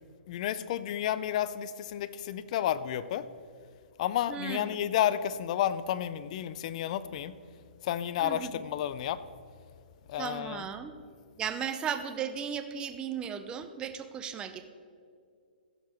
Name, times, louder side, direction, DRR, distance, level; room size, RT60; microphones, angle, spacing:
voice 1, 0.3-3.3 4.0-7.3 7.8-9.2 10.1-10.7, left 11 dB, 45° left, 15 dB, 0.4 m, -31 dB
voice 2, 4.3-4.9 8.2-8.6 10.2-10.9 11.4-14.7, right 7 dB, 15° right, 9 dB, 0.6 m, -36 dB
15.0 x 5.7 x 4.4 m, 2.3 s
hypercardioid pair, 145°, 5 cm